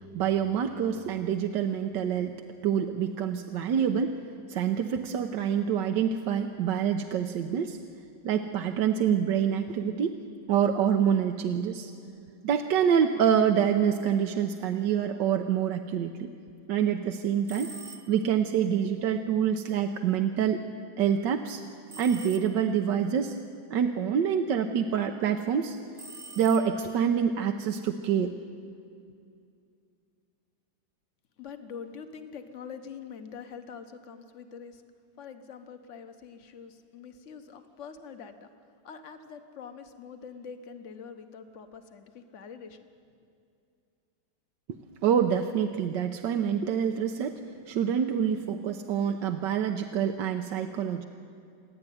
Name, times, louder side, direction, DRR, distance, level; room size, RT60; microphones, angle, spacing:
voice 1, 0.0-4.2 4.5-7.8 8.2-10.2 10.5-11.9 12.4-16.3 16.7-17.7 18.1-20.6 21.0-21.6 22.0-23.4 23.7-25.8 26.4-28.3 45.0-47.4 47.7-51.0, right 8 dB, 75° right, 5 dB, 1.4 m, -26 dB
sound 1, 17.4-18.4 21.9-22.9 25.9-27.1, right 3 dB, 30° right, 0.8 m, -46 dB
voice 2, 31.4-34.8 35.2-38.5 38.8-42.9, left 6 dB, 45° left, 8 dB, 1.3 m, -44 dB
28.5 x 11.0 x 9.2 m, 2.4 s
omnidirectional pair, 2.0 m